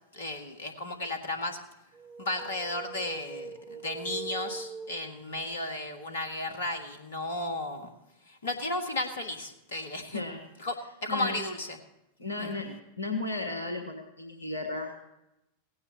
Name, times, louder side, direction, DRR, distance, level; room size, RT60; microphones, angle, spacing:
voice 1, 0.1-1.6 2.2-7.9 8.3-10.2 10.6-11.8 12.4-12.5, left 2 dB, 60° left, 6 dB, 1.8 m, -34 dB
sound 1, 1.9-5.6, right 5 dB, 25° right, 1.8 m, -42 dB
voice 2, 11.1-11.4 12.2-14.9, left 3 dB, 80° left, 3 dB, 1.5 m, -34 dB
17.5 x 16.5 x 3.0 m, 0.90 s
figure-of-eight pair, 90°, 0 cm